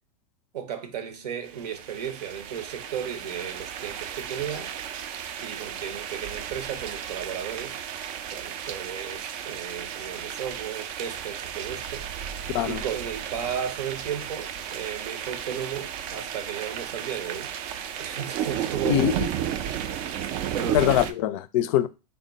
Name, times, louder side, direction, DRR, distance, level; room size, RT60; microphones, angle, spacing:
voice 1, 0.5-4.7 5.0-7.8 8.3-12.1 12.6-17.5 18.0-19.1 20.5-20.9, right 8 dB, 80° right, 0.8 m, -35 dB
sound 1, 1.5-21.1, right 9 dB, 45° right, 0.4 m, -34 dB
voice 2, 18.8-19.3 20.7-21.9, left 12 dB, 60° left, 0.4 m, -23 dB
3.6 x 2.1 x 3.9 m
hypercardioid pair, 105°, 20 cm